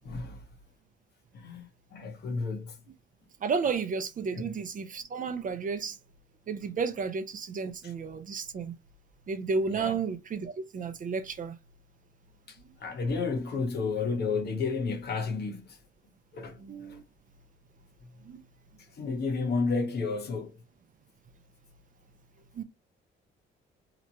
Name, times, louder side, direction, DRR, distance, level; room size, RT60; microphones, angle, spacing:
voice 1, 0.0-0.4 1.3-1.7 1.9-2.7 4.3-4.5 9.7-10.0 12.5-12.6 12.8-15.6 16.3-16.6 16.9-17.0 19.0-20.5, left 4 dB, 55° left, 0.8 m, -31 dB
voice 2, 3.4-6.0 6.5-8.7 9.3-11.6 16.6-17.0 18.3-18.4 22.6-22.7, right 5 dB, 40° right, 0.5 m, -32 dB
2.9 x 2.1 x 2.6 m
cardioid pair, 90°, 20 cm